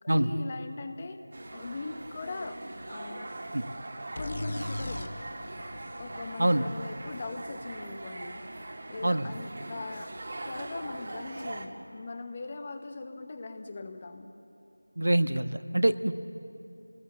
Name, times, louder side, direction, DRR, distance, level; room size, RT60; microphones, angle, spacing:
voice 1, 0.0-1.2 1.5-2.6 2.9-3.3 4.2-5.1 6.0-8.4 8.9-10.1 10.4-14.3, left 3 dB, 20° left, 8 dB, 1.0 m, -40 dB
sound 1, 1.3-11.7, right 2 dB, 35° right, 1.7 m, -41 dB
sound 2, 4.2-7.8, left 1 dB, 40° left, 0.6 m, -40 dB
voice 2, 15.0-16.1, right 1 dB, 70° right, 10 dB, 1.2 m, -25 dB
29.5 x 19.5 x 7.4 m, 2.7 s
figure-of-eight pair, 175°, 0 cm